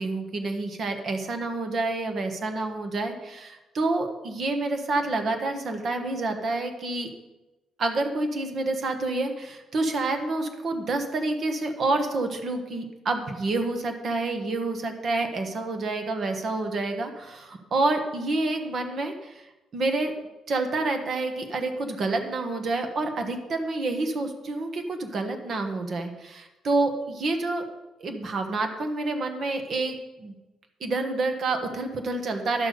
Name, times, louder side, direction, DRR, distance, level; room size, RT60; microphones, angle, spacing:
voice 1, 0.0-7.1 7.8-19.4 19.7-20.1 20.5-27.6 28.0-30.3 30.8-32.7, right 2 dB, 45° right, 5 dB, 1.4 m, -28 dB
11.0 x 6.0 x 6.8 m, 1.0 s
cardioid pair, 125°, 0 cm